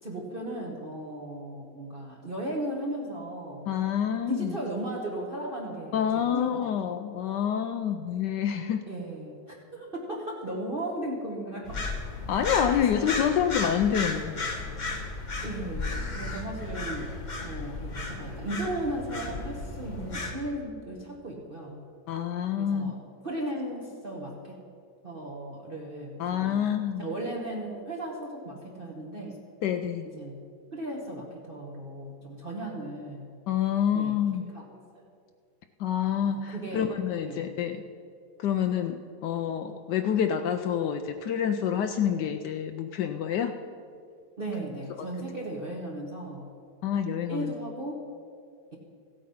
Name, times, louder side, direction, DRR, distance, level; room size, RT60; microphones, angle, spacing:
voice 1, 0.0-3.7 4.3-6.0 6.3-6.6 8.9-11.8 12.4-13.1 15.4-17.1 17.4-21.8 22.6-23.0 23.2-24.6 25.0-26.6 27.0-29.4 30.2-30.4 30.7-33.3 33.9-34.2 34.5-34.6 36.5-36.9 37.2-37.5 44.4-46.5 47.3-48.0, right 1 dB, 35° right, -2 dB, 1.2 m, -36 dB
voice 2, 3.7-4.6 5.9-8.8 12.3-14.4 22.1-22.9 26.2-27.1 29.6-30.1 33.5-34.5 35.8-37.8 38.4-43.6 45.0-45.1 46.8-47.5, left 9 dB, 75° left, 6 dB, 1.1 m, -27 dB
sound 1, 11.6-20.3, left 3 dB, 30° left, 1.0 m, -34 dB
15.5 x 8.5 x 5.6 m, 2.3 s
omnidirectional pair, 1.9 m